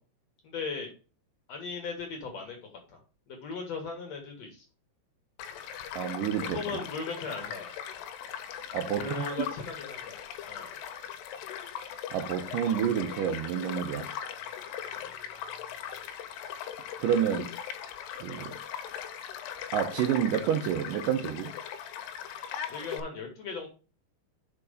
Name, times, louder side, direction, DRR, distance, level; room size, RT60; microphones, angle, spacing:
voice 1, 0.4-0.9 1.5-2.6 2.9-3.0 3.3-4.6 6.5-8.1 9.0-10.2 10.4-10.7 15.0-15.1 22.7-23.7, left 4 dB, 60° left, 1.8 m, -38 dB
Child speech kid speaking / Stream / Car passing by, 5.4-23.0, left 9 dB, 90° left, 2.8 m, -39 dB
voice 2, 5.9-6.6 8.7-9.4 12.1-14.1 17.0-17.5 18.2-18.6 19.7-21.5, right 9 dB, 85° right, 1.9 m, -29 dB
5.9 x 4.8 x 5.0 m
omnidirectional pair, 4.7 m